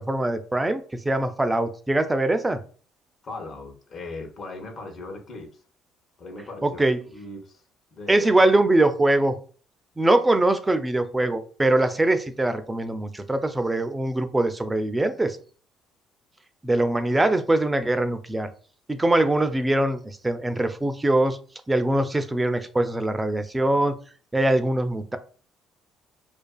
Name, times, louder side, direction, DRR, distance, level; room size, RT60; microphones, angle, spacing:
voice 1, 0.0-2.6 6.6-7.0 8.1-9.4 10.0-15.4 16.6-18.5 18.9-21.4 21.7-24.0 24.3-25.2, right 1 dB, 15° right, 9 dB, 0.4 m, -22 dB
voice 2, 3.2-5.6 6.2-6.8 7.1-7.6 7.9-8.5, left 2 dB, 50° left, 3 dB, 0.8 m, -38 dB
2.4 x 2.4 x 2.3 m, 0.40 s
supercardioid pair, 75°, 0 cm